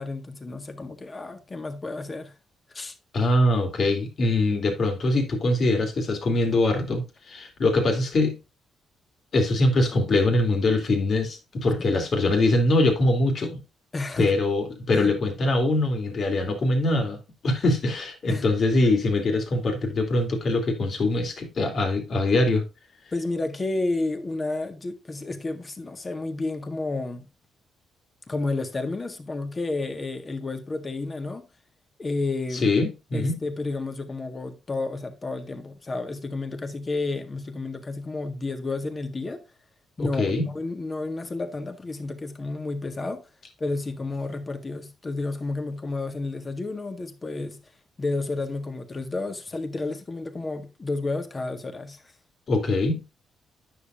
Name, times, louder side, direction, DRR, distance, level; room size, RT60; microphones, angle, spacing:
voice 1, 0.0-2.3 2.7-2.9 13.9-14.3 14.9-15.1 18.3-18.4 18.7-18.9 23.1-27.3 28.3-31.5 32.0-32.7 33.1-39.4 40.0-43.3 43.6-47.6 48.0-52.0, left 3 dB, 30° left, 1.6 m, -31 dB
voice 2, 3.1-8.4 9.3-13.6 14.2-17.2 17.4-22.7 32.5-33.4 40.0-40.5 52.5-53.0, left 2 dB, 55° left, 2.6 m, -23 dB
9.6 x 7.0 x 2.6 m
cardioid pair, 75°, 0 cm